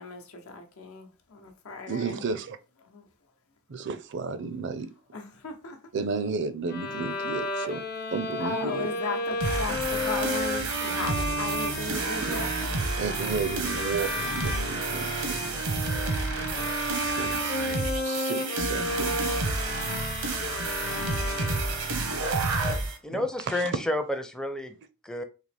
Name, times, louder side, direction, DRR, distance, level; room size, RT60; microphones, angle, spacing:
voice 1, 0.0-2.2 2.9-3.0 5.1-5.8 8.4-12.5, left 3 dB, 80° left, 0.9 m, -36 dB
voice 2, 1.9-2.6 3.7-4.9 5.9-7.8 8.1-8.9 12.2-12.5 13.0-15.5 17.0-17.6 18.0-19.1 23.1-23.7, right 5 dB, 55° right, 0.5 m, -33 dB
Bowed string instrument, 6.7-22.0, left 1 dB, 45° left, 0.7 m, -33 dB
sound 1, 9.4-23.0, right 3 dB, 90° right, 1.0 m, -30 dB
voice 3, 23.0-24.8 25.0-25.2, left 1 dB, 5° left, 0.5 m, -30 dB
4.0 x 2.8 x 3.3 m
head